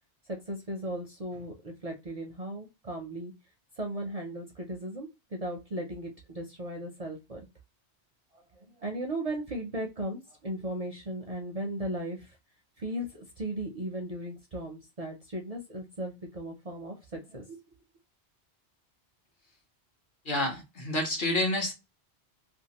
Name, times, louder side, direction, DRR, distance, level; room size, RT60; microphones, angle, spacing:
voice 1, 0.2-3.3 3.8-7.5 8.3-12.4 12.8-17.6, right 1 dB, 45° right, 0.5 m, -37 dB
voice 2, 20.3-21.7, left 1 dB, 50° left, 0.9 m, -28 dB
2.5 x 2.4 x 2.8 m
omnidirectional pair, 1.1 m